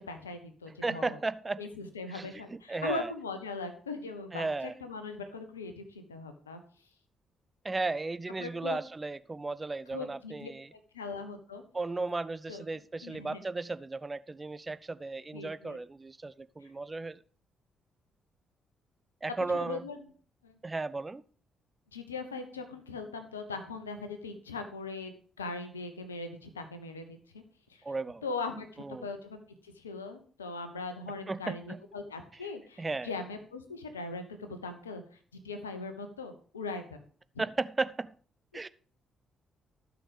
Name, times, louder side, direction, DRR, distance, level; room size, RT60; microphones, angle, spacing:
voice 1, 0.0-1.2 1.6-4.5 4.8-6.6 8.4-8.8 9.9-11.6 12.5-12.6 13.0-13.4 15.3-15.8 16.6-16.7 19.5-20.0 20.4-20.5 21.9-25.1 25.4-27.4 27.7-27.8 28.2-35.2 35.4-37.0, left 3 dB, 85° left, 1.0 m, -40 dB
voice 2, 0.8-1.6 2.1-3.1 4.3-4.7 7.6-10.7 11.7-17.2 19.2-19.9 20.6-21.2 27.8-28.2 28.8-29.1 31.3-31.8 32.8-33.1 37.4-38.1 38.5-38.7, right 3 dB, 25° right, 0.6 m, -35 dB
12.5 x 6.3 x 5.1 m
figure-of-eight pair, 40°, 0 cm